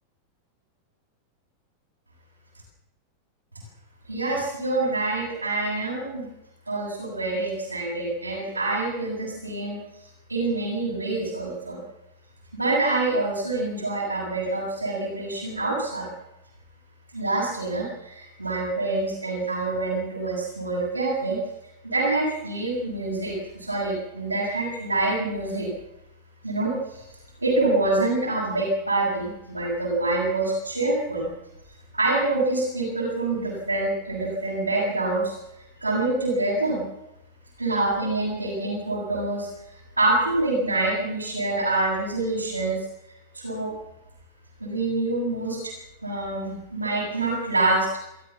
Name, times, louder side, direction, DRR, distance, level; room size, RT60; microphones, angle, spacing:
voice 1, 4.1-6.3 6.7-9.8 10.3-11.8 12.5-16.1 17.1-21.4 21.8-25.7 26.4-27.0 27.4-31.3 31.9-35.4 35.8-36.8 37.6-39.5 40.0-42.8 43.3-43.7 44.6-45.7 46.0-47.9, right 2 dB, 85° right, -5 dB, 7.3 m, -26 dB
28.5 x 14.5 x 7.4 m, 0.91 s
figure-of-eight pair, 90°, 0 cm